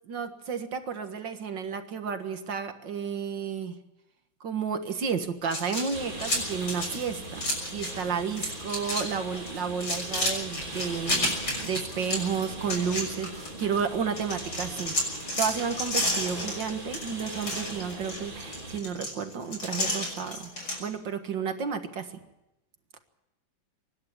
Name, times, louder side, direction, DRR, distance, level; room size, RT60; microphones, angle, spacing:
voice 1, 0.1-3.8 4.4-11.3 11.6-15.0 15.4-20.5 20.8-22.2, right 6 dB, 70° right, 7 dB, 2.2 m, -32 dB
sound 1, 5.4-8.0 8.3-9.1 9.3-13.8 14.2-20.8, left 1 dB, 55° left, 6.9 m, -31 dB
Rainstorm against windows, 5.9-18.8, right 2 dB, 25° right, 3.9 m, -40 dB
25.0 x 11.5 x 9.6 m, 0.91 s
omnidirectional pair, 2.1 m